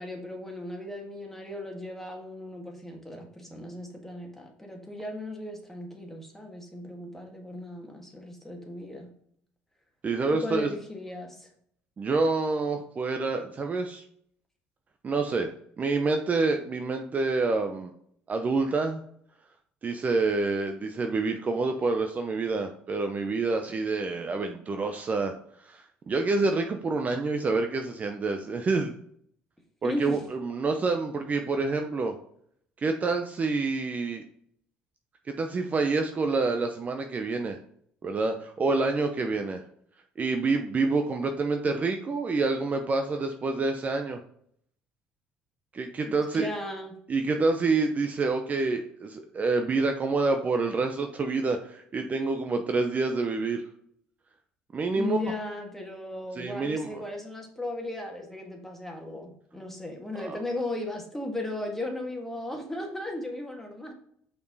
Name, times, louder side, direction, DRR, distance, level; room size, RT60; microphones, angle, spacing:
voice 1, 0.0-9.1 10.3-11.5 29.8-30.2 46.0-47.0 55.0-63.9, left 1 dB, 5° left, 1 dB, 1.8 m, -36 dB
voice 2, 10.0-10.7 12.0-14.0 15.0-15.5 15.8-17.9 18.3-19.0 19.8-25.3 25.6-29.0 29.8-32.2 32.8-34.2 35.3-37.6 38.0-39.6 40.2-44.2 45.7-46.5 47.1-53.6 54.7-55.2 56.4-57.0 60.2-60.4, right 3 dB, 35° right, 5 dB, 0.7 m, -27 dB
5.4 x 4.5 x 4.1 m, 0.66 s
supercardioid pair, 75°, 4 cm